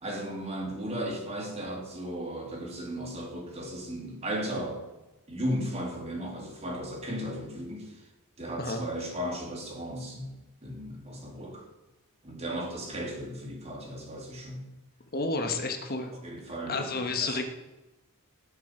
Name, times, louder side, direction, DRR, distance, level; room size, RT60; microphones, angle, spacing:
voice 1, 0.0-4.9 5.3-8.1 8.4-11.7 12.2-14.7 16.2-17.3, equal, 30° right, 1 dB, 2.8 m, -36 dB
voice 2, 15.1-16.1 16.7-17.4, left 3 dB, 45° left, 5 dB, 1.4 m, -30 dB
18.0 x 7.5 x 4.5 m, 1.0 s
head